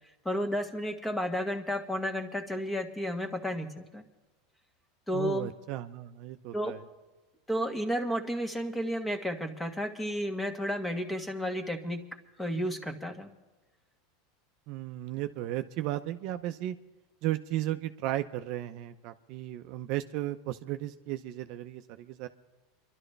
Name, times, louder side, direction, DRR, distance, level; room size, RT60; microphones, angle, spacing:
voice 1, 0.2-4.0 5.1-5.5 6.5-6.7 7.5-12.0 12.4-13.3, equal, 10° left, 6 dB, 1.6 m, -32 dB
voice 2, 5.1-6.8 14.7-16.8 17.2-22.3, right 14 dB, 60° right, 8 dB, 0.7 m, -35 dB
28.5 x 12.0 x 3.4 m, 1.2 s
hypercardioid pair, 105°, 0 cm